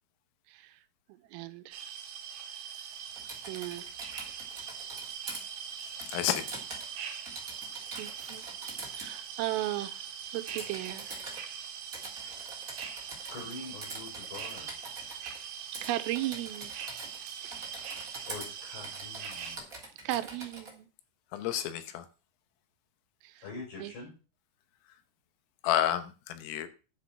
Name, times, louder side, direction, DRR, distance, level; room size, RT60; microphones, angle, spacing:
voice 1, 0.5-0.8 1.3-1.8 2.5-2.6 3.5-3.9 8.0-8.5 8.9-11.2 15.8-18.1 20.0-20.9 23.2-23.4 23.8-23.9, right 15 dB, 85° right, 3.4 m, -37 dB
sound 1, 1.7-19.6, right 7 dB, 65° right, 3.3 m, -42 dB
Typing, 3.2-5.4 6.0-7.0 7.3-9.1 10.5-11.4 11.9-13.5 13.8-15.4 15.7-15.9 16.1-17.2 17.5-18.5 18.8-20.7, right 2 dB, 20° right, 2.7 m, -44 dB
voice 2, 5.8-6.5 21.3-22.1 25.6-26.7, left 11 dB, 80° left, 3.7 m, -30 dB
voice 3, 13.3-14.7 18.3-19.6 23.4-24.1, left 3 dB, 55° left, 7.6 m, -44 dB
10.5 x 7.6 x 5.9 m
omnidirectional pair, 5.9 m